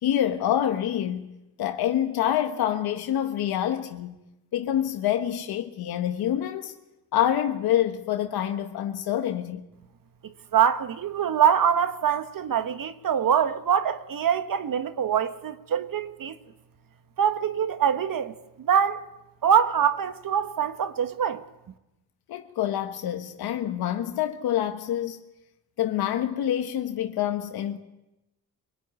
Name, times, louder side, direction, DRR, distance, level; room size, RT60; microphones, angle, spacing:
voice 1, 0.0-1.2 1.6-4.2 4.5-6.7 7.1-9.6 22.3-25.2 25.8-27.8, left 11 dB, 85° left, 1.5 m, -26 dB
voice 2, 10.2-16.4 17.2-19.0 19.4-21.4, right 8 dB, 65° right, 1.5 m, -24 dB
24.5 x 17.0 x 9.6 m
cardioid pair, 65°, 37 cm